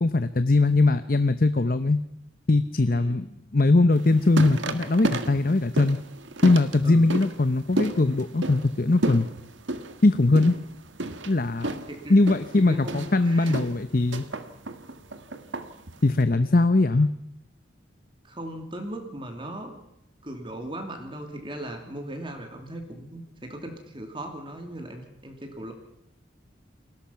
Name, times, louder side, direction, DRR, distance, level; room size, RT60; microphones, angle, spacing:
voice 1, 0.0-2.0 2.5-3.3 3.5-6.0 6.4-9.3 10.0-10.6 11.3-11.7 12.1-14.3 16.0-17.1, left 2 dB, 45° left, 11 dB, 0.8 m, -21 dB
voice 2, 2.9-3.2 6.8-7.1 11.9-12.2 12.6-13.6 16.3-16.6 18.2-19.7 20.2-25.7, right 1 dB, 25° right, 4 dB, 2.8 m, -38 dB
sound 1, 3.9-16.2, right 2 dB, 80° right, 1.8 m, -33 dB
29.5 x 21.5 x 5.8 m, 0.77 s
head